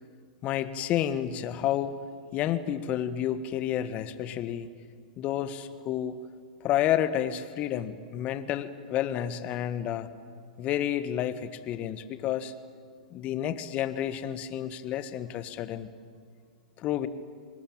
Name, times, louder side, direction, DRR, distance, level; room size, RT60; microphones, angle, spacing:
voice 1, 0.4-1.9 2.3-4.7 5.2-6.2 6.6-10.1 10.6-12.5 13.1-15.9 16.8-17.1, left 11 dB, 35° left, 12 dB, 1.6 m, -30 dB
26.0 x 19.5 x 9.0 m, 2.1 s
hypercardioid pair, 105°, 4 cm